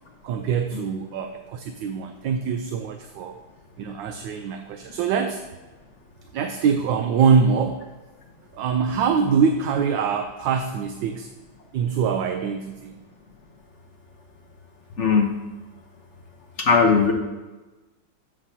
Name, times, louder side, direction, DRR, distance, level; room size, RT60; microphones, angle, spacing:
voice 1, 0.2-3.4 3.8-5.4 6.3-7.8 8.5-11.3 11.7-13.0, right 6 dB, 75° right, 6 dB, 1.2 m, -24 dB
voice 2, 15.0-15.3 16.6-17.1, left 5 dB, 50° left, 2 dB, 0.8 m, -18 dB
12.5 x 7.7 x 2.8 m, 1.2 s
omnidirectional pair, 2.2 m